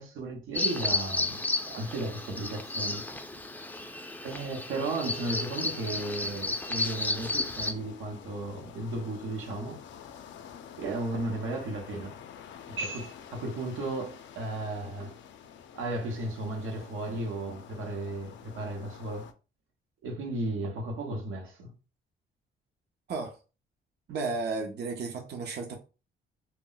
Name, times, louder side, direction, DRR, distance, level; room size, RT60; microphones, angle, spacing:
voice 1, 0.0-3.0 4.2-9.8 10.8-12.2 12.7-15.2 15.7-19.3 20.0-21.7, right 2 dB, 85° right, 0.8 m, -35 dB
Bird vocalization bird call bird song, 0.5-7.7, left 2 dB, 10° left, 0.4 m, -32 dB
sound 1, 5.2-19.3, left 8 dB, 70° left, 0.4 m, -49 dB
voice 2, 24.1-25.8, right 3 dB, 55° right, 0.6 m, -33 dB
2.1 x 2.1 x 3.7 m
cardioid pair, 90°, 20 cm